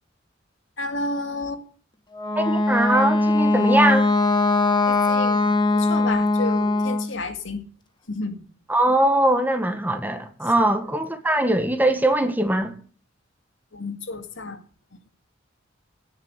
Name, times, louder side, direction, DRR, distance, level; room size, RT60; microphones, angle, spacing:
voice 1, 0.8-1.6 4.8-7.6 8.1-8.5 10.6-10.7 13.7-14.6, left 2 dB, 75° left, 2.1 m, -31 dB
Wind instrument woodwind instrument, 2.1-7.1, left 2 dB, 25° left, 1.7 m, -20 dB
voice 2, 2.4-4.1 8.7-12.7, right 1 dB, 10° right, 1.6 m, -21 dB
17.0 x 7.7 x 8.2 m
head